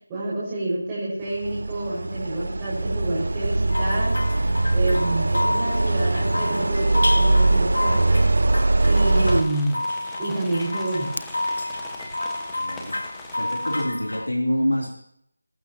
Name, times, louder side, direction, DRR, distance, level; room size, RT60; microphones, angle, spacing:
voice 1, 0.1-4.2 4.7-8.2 8.8-9.8 10.2-11.2, right 2 dB, 15° right, -10 dB, 5.1 m, -28 dB
sound 1, 1.3-9.4, right 2 dB, 60° right, 0.6 m, -21 dB
sound 2, 3.7-14.3, left 1 dB, 70° left, 1.2 m, -29 dB
sound 3, 8.8-13.8, left 2 dB, 5° left, 1.4 m, -43 dB
voice 2, 12.5-13.0 13.4-14.9, equal, 85° left, -1 dB, 3.4 m, -26 dB
21.5 x 12.5 x 2.9 m, 0.69 s
figure-of-eight pair, 165°, 0 cm